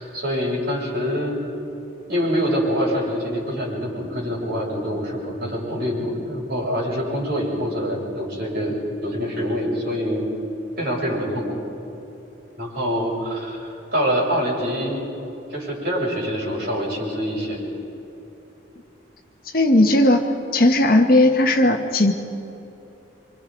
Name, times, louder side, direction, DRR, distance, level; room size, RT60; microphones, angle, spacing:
voice 1, 0.0-1.4 2.1-10.3 10.8-11.6 12.6-15.0 15.5-17.6, equal, 50° right, -5 dB, 7.4 m, -25 dB
voice 2, 19.5-20.3 20.5-22.1, left 1 dB, 50° left, 4 dB, 1.3 m, -16 dB
26.5 x 26.0 x 5.3 m, 2.9 s
head